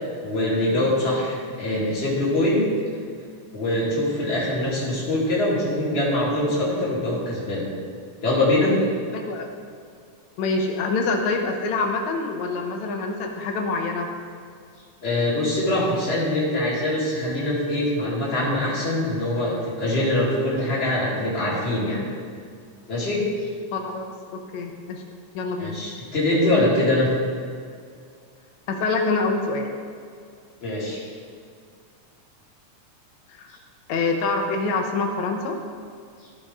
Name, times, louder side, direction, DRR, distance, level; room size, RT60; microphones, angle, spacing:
voice 1, 0.2-2.6 3.5-7.7 8.2-8.7 15.0-22.0 22.9-23.5 25.6-27.1 30.6-31.0, left 1 dB, 20° left, -7 dB, 2.1 m, -23 dB
voice 2, 9.1-9.5 10.4-14.1 23.7-24.1 24.3-25.0 25.3-25.8 28.7-29.7 33.3-33.5 33.9-35.6, left 3 dB, 75° left, 3 dB, 2.0 m, -25 dB
13.5 x 5.1 x 3.6 m, 2.2 s
omnidirectional pair, 3.4 m